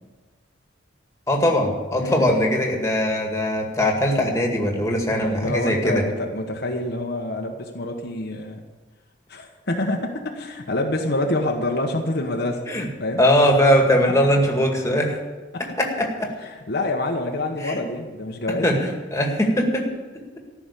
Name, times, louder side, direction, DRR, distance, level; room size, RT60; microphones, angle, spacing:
voice 1, 1.3-6.1 12.7-12.9 13.2-15.2 15.6-16.3 17.6-17.8 18.5-19.9, equal, 15° left, 1 dB, 2.0 m, -21 dB
voice 2, 2.0-2.3 5.1-8.6 9.3-12.7 13.0-13.2 16.4-18.8, left 1 dB, 60° left, 2 dB, 1.2 m, -27 dB
14.0 x 6.1 x 9.9 m, 1.3 s
head